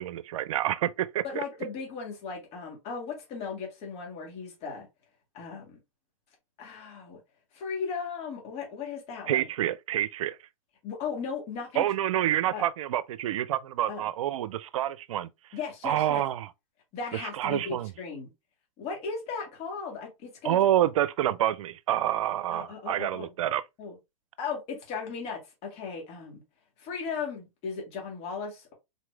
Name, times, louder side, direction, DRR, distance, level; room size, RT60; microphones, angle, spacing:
voice 1, 0.0-1.2 9.3-10.4 11.8-15.3 15.8-16.5 17.1-17.9 20.4-23.6, right 12 dB, 65° right, 0.5 m, -27 dB
voice 2, 1.2-4.9 5.3-5.8 6.6-7.2 7.5-9.5 10.8-11.8 12.5-12.7 13.9-14.0 15.5-16.3 16.9-18.3 18.8-20.6 22.5-23.3 23.8-24.0 24.4-26.4 26.8-28.7, left 5 dB, 35° left, 2.2 m, -36 dB
4.2 x 3.0 x 3.3 m
hypercardioid pair, 120°, 18 cm